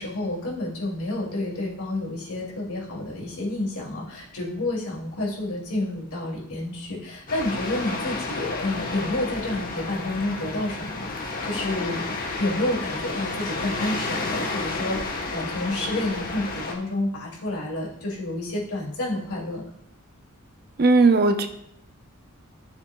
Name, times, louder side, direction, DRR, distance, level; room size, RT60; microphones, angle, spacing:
voice 1, 0.0-19.6, left 2 dB, 85° left, -3 dB, 2.6 m, -29 dB
sound 1, 7.3-16.7, left 3 dB, 40° left, 1.2 m, -31 dB
voice 2, 20.8-21.5, right 3 dB, 45° right, 7 dB, 0.6 m, -17 dB
13.0 x 6.7 x 2.3 m, 0.73 s
head